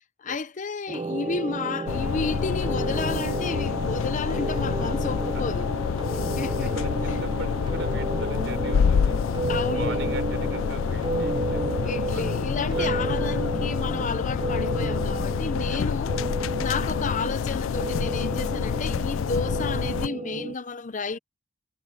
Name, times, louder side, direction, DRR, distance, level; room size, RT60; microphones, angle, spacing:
voice 1, 0.2-5.8 6.4-6.7 9.5-10.0 11.8-16.1 16.6-21.2, left 4 dB, 40° left, 0.6 m, -31 dB
sound 1, 0.9-20.5, right 3 dB, 25° right, 0.4 m, -32 dB
sound 2, 1.9-20.1, left 7 dB, 90° left, 0.4 m, -27 dB
voice 2, 6.6-9.2 9.7-12.4 12.7-13.1 15.6-16.0, right 2 dB, 65° right, 4.5 m, -39 dB
head